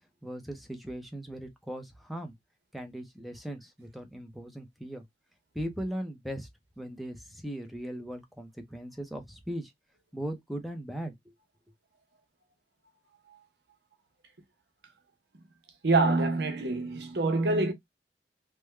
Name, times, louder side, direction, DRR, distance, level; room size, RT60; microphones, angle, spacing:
voice 1, 0.2-2.3 2.7-5.0 5.5-6.5 6.8-9.7 10.1-11.1, equal, ahead, 0.6 m, -38 dB
voice 2, 15.8-17.7, right 3 dB, 75° right, 0.8 m, -26 dB
3.4 x 2.2 x 3.1 m
head